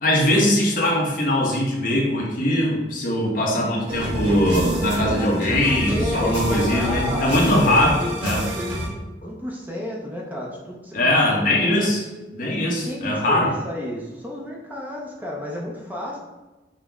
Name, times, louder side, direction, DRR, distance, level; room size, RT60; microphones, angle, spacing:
voice 1, 0.0-8.4 10.9-12.1 12.3-13.5, left 1 dB, 50° left, -2 dB, 0.9 m, -21 dB
sound 1, 3.9-8.9, right 1 dB, 90° right, 1.1 m, -27 dB
voice 2, 5.9-11.9 12.8-16.2, left 1 dB, 10° right, -3 dB, 0.5 m, -32 dB
5.4 x 2.0 x 3.5 m, 1.1 s
head